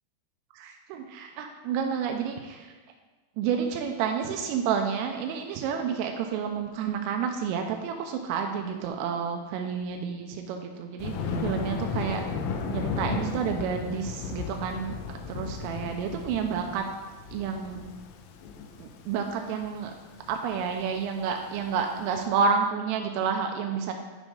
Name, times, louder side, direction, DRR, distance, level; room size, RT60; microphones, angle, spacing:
voice 1, 0.6-2.7 3.4-12.2 12.7-16.8 17.3-17.8 18.8-19.9 20.3-23.9, right 6 dB, 85° right, 4 dB, 3.1 m, -30 dB
Thunder, 11.0-22.1, left 5 dB, 85° left, 3.2 m, -35 dB
10.5 x 5.0 x 3.7 m, 1.3 s
omnidirectional pair, 6.0 m